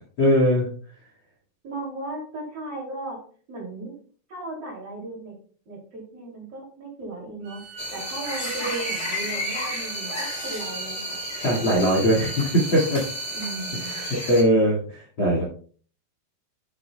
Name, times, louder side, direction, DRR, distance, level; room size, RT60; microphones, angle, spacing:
voice 1, 0.2-0.7 11.4-13.0 13.8-14.8 15.2-15.4, equal, 40° left, -3 dB, 2.2 m, -20 dB
voice 2, 1.6-3.2 3.5-3.9 4.3-5.4 5.7-7.6 7.9-11.2 13.3-14.0, right 2 dB, 40° right, -2 dB, 3.6 m, -36 dB
Bowed string instrument, 7.4-14.2, right 7 dB, 85° right, 3.9 m, -41 dB
sound 1, 7.8-14.4, equal, 10° left, 4.0 m, -32 dB
11.0 x 8.5 x 2.3 m, 0.43 s
omnidirectional pair, 4.9 m